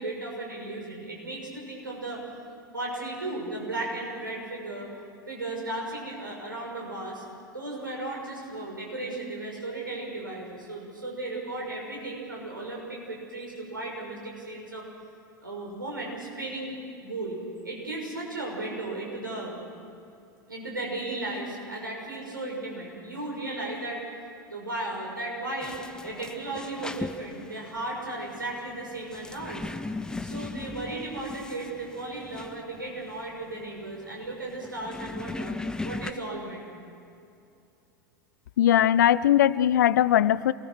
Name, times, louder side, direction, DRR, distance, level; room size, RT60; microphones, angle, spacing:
voice 1, 0.0-2.2 2.7-4.9 5.3-7.2 7.5-14.9 15.4-16.8 17.0-17.4 17.6-19.5 20.5-24.0 24.5-29.7 30.2-35.6 35.8-36.7, right 2 dB, 80° right, -1 dB, 6.1 m, -35 dB
sound 1, 25.6-36.1, left 2 dB, 5° left, 0.8 m, -38 dB
voice 2, 38.6-40.5, left 11 dB, 60° left, 19 dB, 0.6 m, -20 dB
27.0 x 20.0 x 6.4 m, 2.6 s
figure-of-eight pair, 85°, 11 cm